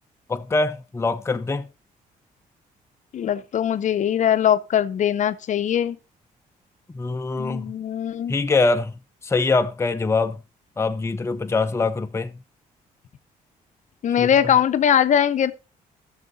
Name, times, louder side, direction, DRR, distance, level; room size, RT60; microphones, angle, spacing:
voice 1, 0.3-1.7 6.9-7.7 8.3-8.9 9.2-10.4 10.8-12.3 14.2-14.3, left 3 dB, 20° left, 0.6 m, -23 dB
voice 2, 3.1-6.0 7.4-8.4 14.0-15.5, left 9 dB, 55° left, 0.7 m, -21 dB
14.5 x 6.5 x 4.0 m
cardioid pair, 95°, 15 cm